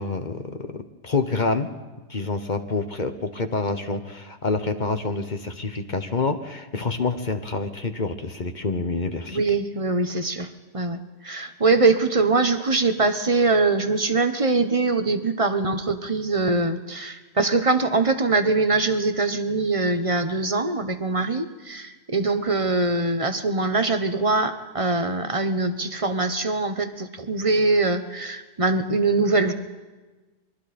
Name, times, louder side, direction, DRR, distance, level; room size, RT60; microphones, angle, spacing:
voice 1, 0.0-1.7 2.1-9.4, left 3 dB, 35° left, 8 dB, 1.0 m, -27 dB
voice 2, 9.3-29.5, right 3 dB, 25° right, 9 dB, 0.8 m, -23 dB
28.0 x 22.5 x 4.2 m, 1.2 s
omnidirectional pair, 1.8 m